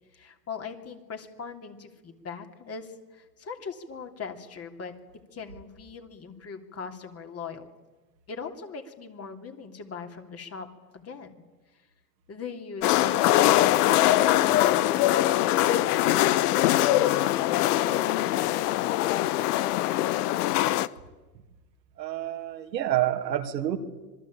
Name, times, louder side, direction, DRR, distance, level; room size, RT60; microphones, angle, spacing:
voice 1, 0.1-4.9 5.3-7.7 8.3-10.7 10.9-11.4 12.3-18.6, left 5 dB, 30° left, 5 dB, 3.2 m, -40 dB
sound 1, 12.8-20.9, left 15 dB, 65° left, 1.1 m, -22 dB
voice 2, 22.0-23.8, right 12 dB, 80° right, 5 dB, 2.7 m, -28 dB
26.0 x 20.5 x 8.9 m, 1.2 s
hypercardioid pair, 100°, 50 cm